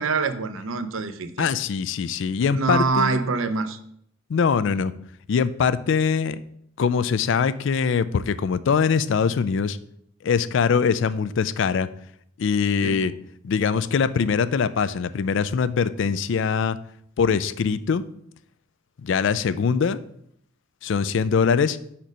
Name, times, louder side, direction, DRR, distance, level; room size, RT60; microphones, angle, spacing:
voice 1, 0.0-1.5 2.5-3.8 12.8-13.0, right 4 dB, 75° right, 0.6 m, -25 dB
voice 2, 1.4-3.2 4.3-4.9 5.3-6.4 6.8-9.8 10.2-11.9 12.4-13.1 13.4-16.8 17.2-18.0 19.0-20.0 20.8-21.8, left 6 dB, 60° left, 0.4 m, -22 dB
5.2 x 4.4 x 6.1 m
head